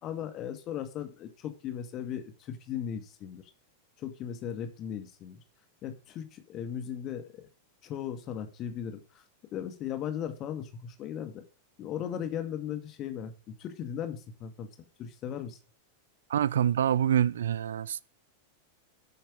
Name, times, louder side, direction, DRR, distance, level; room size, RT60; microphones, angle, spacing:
voice 1, 0.0-3.4 4.0-5.4 5.8-7.5 7.8-9.2 9.5-11.4 11.8-14.7 15.0-15.6, left 9 dB, 35° left, 2.2 m, -37 dB
voice 2, 16.3-18.0, right 10 dB, 65° right, 0.5 m, -26 dB
12.0 x 8.9 x 5.1 m
figure-of-eight pair, 90°, 0 cm